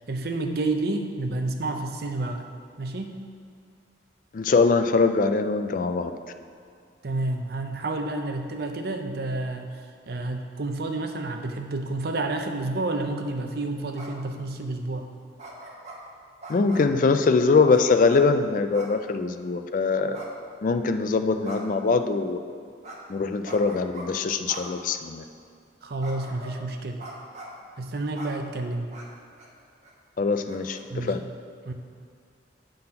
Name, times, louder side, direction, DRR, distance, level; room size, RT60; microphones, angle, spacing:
voice 1, 0.1-2.4 2.8-3.2 7.0-9.8 10.1-15.1 25.8-27.0 27.8-28.9 30.9-31.1 31.7-31.8, right 2 dB, 60° right, 5 dB, 0.6 m, -30 dB
voice 2, 4.3-6.1 16.5-20.2 20.6-22.4 23.1-25.2 30.2-31.2, left 4 dB, 45° left, 9 dB, 0.3 m, -22 dB
sound 1, 13.9-14.3 15.4-16.0 16.4-16.9 17.7-18.2 18.7-19.0 19.3-19.4 20.1-20.8 21.4-21.8 22.8-23.0 23.4-24.1 24.5-24.7 25.2-25.3 26.0-26.6 27.0-27.6 28.1-28.3 28.9-29.1 29.4-29.5 29.8-29.9 30.5-30.8, right 2 dB, 40° right, 1.0 m, -42 dB
7.7 x 3.8 x 5.8 m, 2.3 s
head